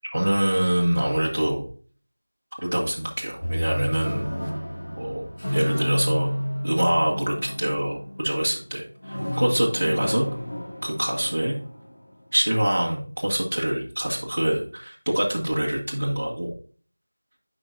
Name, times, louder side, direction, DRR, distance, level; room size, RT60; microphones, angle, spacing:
voice 1, 0.0-1.7 2.6-4.3 4.9-6.4 6.6-10.3 10.8-11.6 12.3-16.5, right 1 dB, 45° right, -4 dB, 1.4 m, -25 dB
sound 1, 3.4-8.6 9.0-12.1, equal, 70° left, 2.0 m, -30 dB
9.5 x 5.0 x 2.5 m, 0.43 s
figure-of-eight pair, 180°, 0 cm